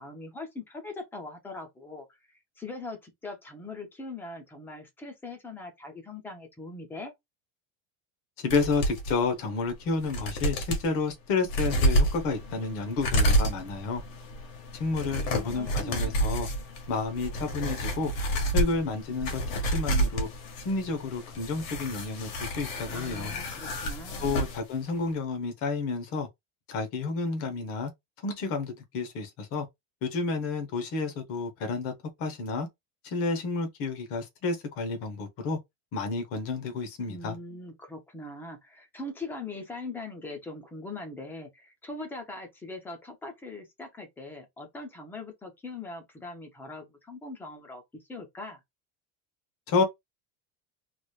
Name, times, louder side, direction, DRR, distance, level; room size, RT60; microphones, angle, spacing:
voice 1, 0.0-2.1 2.6-7.1 15.0-16.2 22.9-24.4 37.0-47.8 48.1-48.6, left 2 dB, 5° left, 0.3 m, -41 dB
voice 2, 8.4-14.0 14.8-16.5 16.9-18.1 18.5-20.3 20.6-23.3 24.2-26.3 26.7-27.9 28.2-29.7 30.0-31.9 32.2-32.7 33.0-35.6 35.9-37.4 49.7-49.8, left 4 dB, 35° left, 1.0 m, -30 dB
sound 1, 8.5-9.1 9.7-9.8 10.0-10.9 11.5-24.6 24.9-25.0, right 1 dB, 75° left, 1.7 m, -29 dB
4.0 x 3.2 x 2.3 m
cardioid pair, 170°, 40 cm